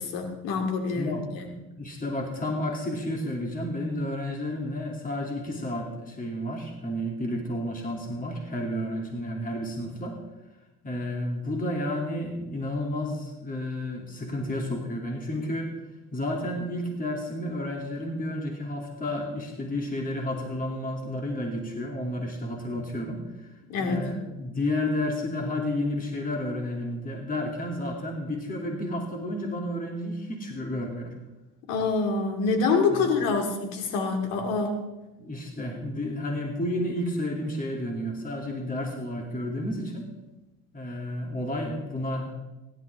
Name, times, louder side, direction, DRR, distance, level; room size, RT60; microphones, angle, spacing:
voice 1, 0.0-1.1 1.4-1.6 23.7-24.1 31.7-34.8, left 4 dB, 75° left, 4 dB, 2.6 m, -26 dB
voice 2, 1.0-1.3 1.8-10.2 10.8-15.7 16.1-23.5 23.8-31.1 32.9-33.1 35.2-40.1 40.7-42.3, left 1 dB, 25° left, 1 dB, 2.9 m, -31 dB
17.0 x 11.5 x 3.6 m, 1.1 s
supercardioid pair, 75°, 35 cm